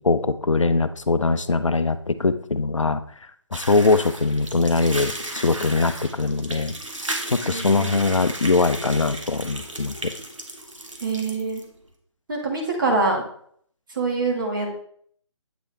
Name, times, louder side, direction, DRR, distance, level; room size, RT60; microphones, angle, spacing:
voice 1, 0.0-3.0 3.5-6.7 7.3-10.1, left 3 dB, 85° left, 12 dB, 0.5 m, -22 dB
sound 1, 3.5-11.6, right 1 dB, 85° right, 1.2 m, -34 dB
voice 2, 7.4-8.0 11.0-11.6 12.3-13.2 13.9-14.7, right 3 dB, 40° right, 0 dB, 1.8 m, -25 dB
8.3 x 3.2 x 4.2 m, 0.62 s
figure-of-eight pair, 150°, 16 cm